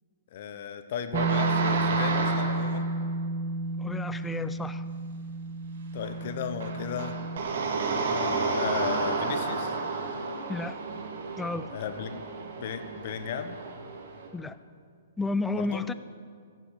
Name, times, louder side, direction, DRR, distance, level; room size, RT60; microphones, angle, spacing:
voice 1, 0.3-2.9 5.9-7.2 7.9-9.8 11.7-12.2 12.6-13.6 15.6-15.8, left 7 dB, 55° left, 10 dB, 1.1 m, -35 dB
Bass guitar, 1.1-7.4, right 3 dB, 30° right, 1.0 m, -31 dB
sound 1, 1.1-3.0 6.0-6.2 6.6-14.3, right 4 dB, 60° right, 2.2 m, -31 dB
voice 2, 3.8-4.9 10.5-10.8 11.4-11.7 14.3-14.6 15.2-15.9, left 3 dB, 10° left, 13 dB, 0.5 m, -31 dB
14.5 x 9.2 x 8.3 m, 2.1 s
hypercardioid pair, 120°, 0 cm